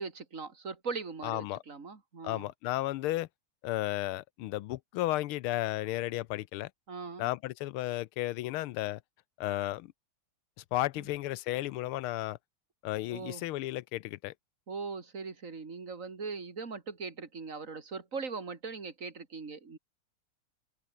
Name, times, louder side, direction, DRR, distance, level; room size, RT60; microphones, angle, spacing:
voice 1, 0.0-2.5 6.9-7.3 11.0-11.1 13.1-13.4 14.7-19.8, right 4 dB, 35° right, 3.1 m, -40 dB
voice 2, 1.2-1.6 2.2-3.3 3.6-6.7 7.2-9.0 9.4-9.9 10.7-12.4 12.8-14.3, left 16 dB, 85° left, 1.5 m, -33 dB
omnidirectional pair, 2.4 m